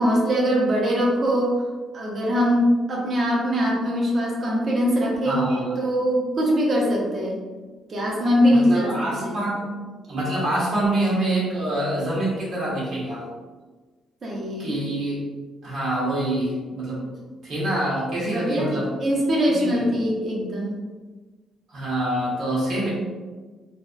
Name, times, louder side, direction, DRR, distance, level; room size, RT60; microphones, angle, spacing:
voice 1, 0.0-1.6 1.9-7.4 7.9-9.4 14.2-14.7 18.2-20.8, equal, 45° right, -2 dB, 0.7 m, -22 dB
voice 2, 5.2-5.7 8.5-9.7 10.1-13.2 14.6-15.2 15.6-17.1 17.4-18.9 19.5-19.9 21.7-22.9, right 1 dB, 60° right, -7 dB, 1.1 m, -26 dB
2.7 x 2.1 x 2.4 m, 1.3 s
cardioid pair, 90°, 0 cm